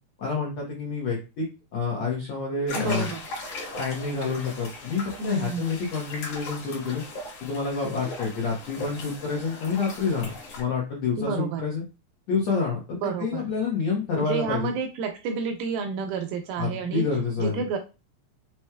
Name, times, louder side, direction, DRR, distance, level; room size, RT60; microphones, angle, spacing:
voice 1, 0.2-3.1 3.7-7.0 7.4-10.3 10.6-11.8 12.3-12.8 13.2-14.7 16.6-17.6, left 4 dB, 85° left, -3 dB, 1.4 m, -28 dB
sound 1, 2.7-10.6, left 2 dB, 60° left, 1.6 m, -38 dB
voice 2, 2.7-3.2 5.2-5.7 11.2-11.7 12.9-13.4 14.1-17.0 17.4-17.8, right 5 dB, 85° right, 4 dB, 2.2 m, -30 dB
6.2 x 2.9 x 2.3 m, 0.29 s
omnidirectional pair, 4.7 m